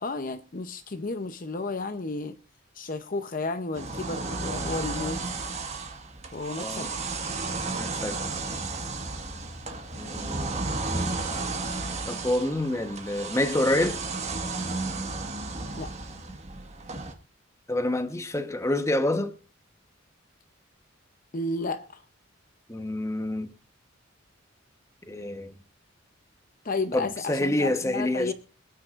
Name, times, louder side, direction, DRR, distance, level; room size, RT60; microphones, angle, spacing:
voice 1, 0.0-2.4 2.7-5.3 6.3-7.0 15.8-15.9 21.3-22.0 26.6-28.3, left 3 dB, 40° left, 0.7 m, -32 dB
sound 1, 3.7-17.1, right 3 dB, 35° right, 1.6 m, -33 dB
voice 2, 6.6-6.9 7.8-8.2 10.0-11.1 12.1-14.0 17.7-19.3 22.7-23.5 25.1-25.5 26.9-28.3, left 1 dB, 15° left, 1.1 m, -28 dB
26.0 x 9.4 x 2.5 m
head